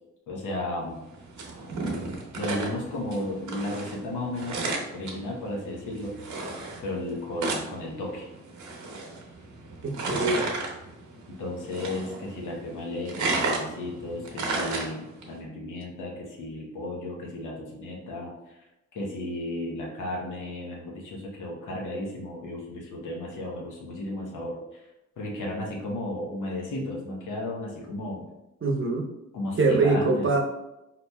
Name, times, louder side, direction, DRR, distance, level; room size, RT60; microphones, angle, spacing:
voice 1, 0.3-1.0 2.3-6.5 6.8-8.3 11.3-18.6 18.9-24.9 25.2-28.3 29.3-30.3, left 1 dB, 80° left, -2 dB, 0.9 m, -34 dB
sound 1, 0.9-15.4, right 3 dB, 70° right, 0.8 m, -34 dB
voice 2, 9.8-10.6 28.6-29.1 29.6-30.4, right 3 dB, 40° right, 1 dB, 0.7 m, -23 dB
4.1 x 2.9 x 2.2 m, 0.94 s
cardioid pair, 55°, 30 cm